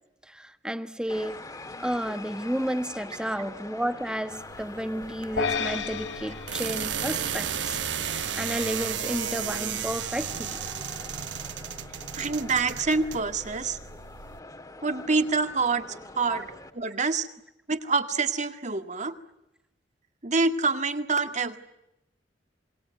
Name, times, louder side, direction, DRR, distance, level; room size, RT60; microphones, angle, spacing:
voice 1, 0.3-1.4 1.8-7.8 8.1-10.6 16.3-16.4, equal, 5° right, 10 dB, 1.4 m, -32 dB
sound 1, 1.1-16.7, left 2 dB, 20° left, 1.9 m, -44 dB
sound 2, 4.3-14.4, right 8 dB, 80° right, 1.1 m, -34 dB
sound 3, 5.4-7.8, left 5 dB, 75° left, 1.8 m, -33 dB
voice 2, 12.1-13.8 14.8-16.5 16.8-17.3 17.7-19.1 20.2-21.6, right 4 dB, 40° right, 8 dB, 2.0 m, -26 dB
28.0 x 21.5 x 9.2 m, 0.89 s
head